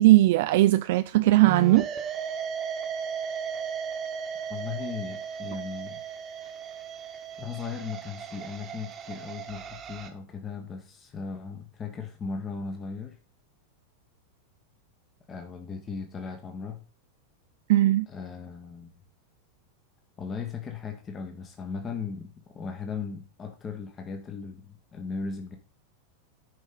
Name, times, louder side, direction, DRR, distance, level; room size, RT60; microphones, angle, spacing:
voice 1, 0.0-1.9 17.7-18.1, right 16 dB, 50° right, 0.3 m, -19 dB
sound 1, 1.4-10.1, right 6 dB, 30° right, 1.2 m, -36 dB
voice 2, 4.5-6.0 7.4-13.2 15.3-16.8 18.1-18.9 20.2-25.6, left 5 dB, 25° left, 1.2 m, -37 dB
11.0 x 5.3 x 3.9 m
figure-of-eight pair, 90°, 0 cm